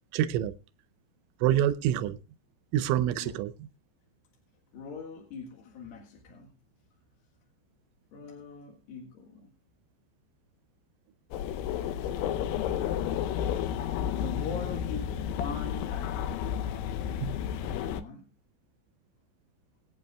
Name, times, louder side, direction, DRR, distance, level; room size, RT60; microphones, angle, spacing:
voice 1, 0.1-0.5 1.4-2.2 2.7-3.5 17.2-17.4, right 11 dB, 85° right, 12 dB, 3.1 m, -26 dB
voice 2, 4.7-6.5 8.1-9.5 11.7-13.0 13.2-13.4 13.7-16.4 17.4-18.3, left 5 dB, 60° left, 0 dB, 3.0 m, -42 dB
sound 1, 11.3-18.0, left 9 dB, 85° left, 2.3 m, -32 dB
23.0 x 8.8 x 2.3 m, 0.32 s
omnidirectional pair, 5.5 m